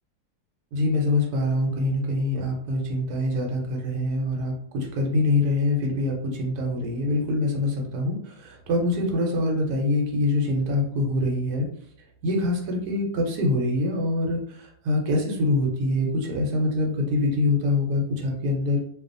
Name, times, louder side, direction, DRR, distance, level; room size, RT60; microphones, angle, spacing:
voice 1, 0.7-11.7 12.2-18.8, left 2 dB, 75° right, 0 dB, 1.1 m, -25 dB
2.5 x 2.3 x 2.5 m, 0.68 s
omnidirectional pair, 1.7 m